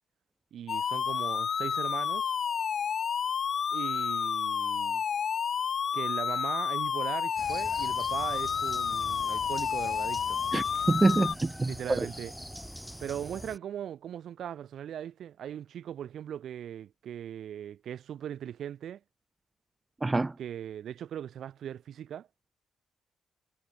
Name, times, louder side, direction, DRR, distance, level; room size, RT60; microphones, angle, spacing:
voice 1, 0.5-2.3 3.7-5.0 5.9-10.4 11.6-12.6 13.0-19.0 20.4-22.3, right 10 dB, 60° right, 4.7 m, -39 dB
sound 1, 0.7-11.3, left 7 dB, 45° left, 0.5 m, -30 dB
sound 2, 7.4-13.6, equal, ahead, 1.1 m, -44 dB
voice 2, 10.5-11.7 20.0-20.3, right 2 dB, 15° right, 0.4 m, -26 dB
cardioid pair, 165°, 0 cm